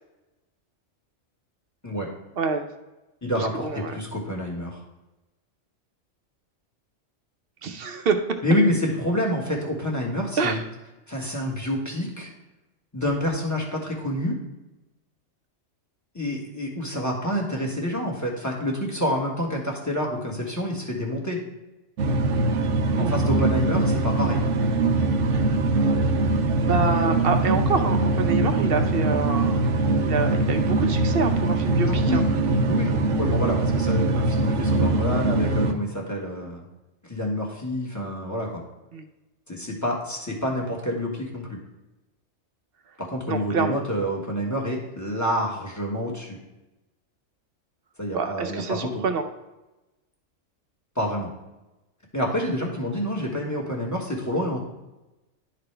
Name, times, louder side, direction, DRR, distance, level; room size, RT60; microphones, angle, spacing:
voice 1, 2.4-2.7 3.4-4.0 7.6-8.2 10.4-10.6 23.0-23.2 26.6-29.6 30.1-32.2 38.9-39.1 43.3-43.8 48.1-49.2, right 5 dB, 55° right, 7 dB, 0.8 m, -26 dB
voice 2, 3.2-4.8 8.4-10.6 11.1-12.3 12.9-14.4 16.1-21.4 23.0-24.4 31.9-32.2 32.7-36.6 37.1-38.6 39.5-41.6 43.0-46.4 48.0-49.0 50.9-51.3 52.1-54.6, equal, 15° left, -2 dB, 1.4 m, -28 dB
sound 1, 22.0-35.7, right 2 dB, 75° right, 1.0 m, -22 dB
11.5 x 4.1 x 3.3 m, 1.0 s
omnidirectional pair, 1.3 m